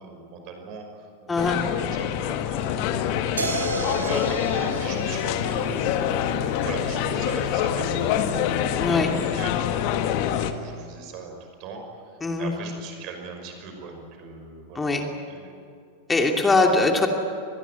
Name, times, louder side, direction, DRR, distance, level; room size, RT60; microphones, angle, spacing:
voice 1, 0.0-14.9 15.3-15.5, right 4 dB, 40° right, 4 dB, 5.8 m, -39 dB
sound 1, 1.4-10.5, left 10 dB, 45° left, 1.6 m, -26 dB
sound 2, 3.4-9.2, right 2 dB, 75° right, 3.1 m, -34 dB
voice 2, 8.8-9.1 12.2-12.5 14.7-15.0 16.1-17.1, left 3 dB, 15° left, 3 dB, 2.7 m, -21 dB
25.5 x 20.0 x 9.4 m, 2.5 s
figure-of-eight pair, 90°, 0 cm